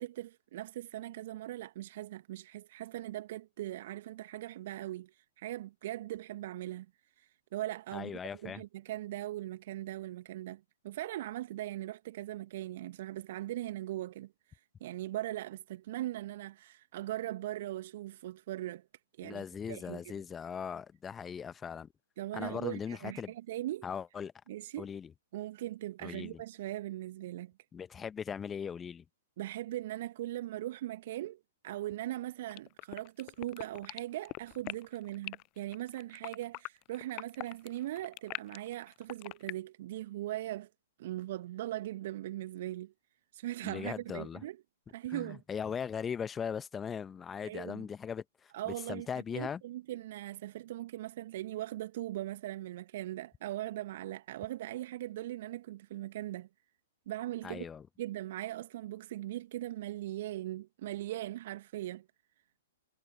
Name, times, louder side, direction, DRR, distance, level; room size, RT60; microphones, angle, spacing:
voice 1, 0.0-6.9 7.2-18.9 19.2-20.1 22.2-23.9 24.5-24.9 25.3-27.5 29.4-40.7 41.0-42.9 43.3-44.6 44.9-45.4 47.4-47.9 48.5-56.5 57.0-57.7 58.0-62.1, right 14 dB, 50° right, 1.7 m, -40 dB
voice 2, 7.9-8.6 19.2-21.9 22.3-23.3 23.8-24.3 24.8-25.1 26.0-26.4 27.7-29.0 43.6-44.4 45.1-49.6 57.4-57.8, left 7 dB, 15° left, 1.2 m, -39 dB
sound 1, 32.5-39.5, left 24 dB, 35° left, 0.4 m, -41 dB
figure-of-eight pair, 110°, 0 cm